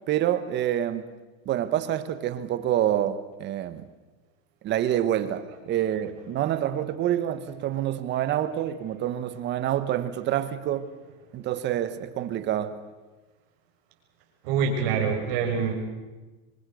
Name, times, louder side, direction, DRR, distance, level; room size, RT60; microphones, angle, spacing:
voice 1, 0.1-1.1 1.4-3.8 4.6-10.9 11.3-12.8, right 11 dB, 35° right, 1.5 m, -27 dB
voice 2, 14.4-15.8, right 6 dB, 60° right, 6.5 m, -25 dB
26.0 x 23.5 x 6.5 m
supercardioid pair, 145°, 33 cm